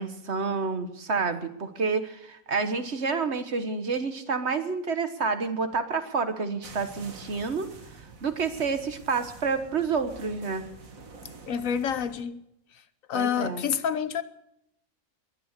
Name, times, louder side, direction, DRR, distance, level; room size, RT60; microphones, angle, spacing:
voice 1, 0.0-7.7 8.2-10.6 13.1-13.7, right 4 dB, 55° right, 1.5 m, -29 dB
sound 1, 6.6-12.2, right 4 dB, 75° right, 2.1 m, -47 dB
voice 2, 11.5-12.4 13.1-14.2, left 8 dB, 75° left, 1.3 m, -28 dB
21.0 x 10.0 x 6.7 m
omnidirectional pair, 1.4 m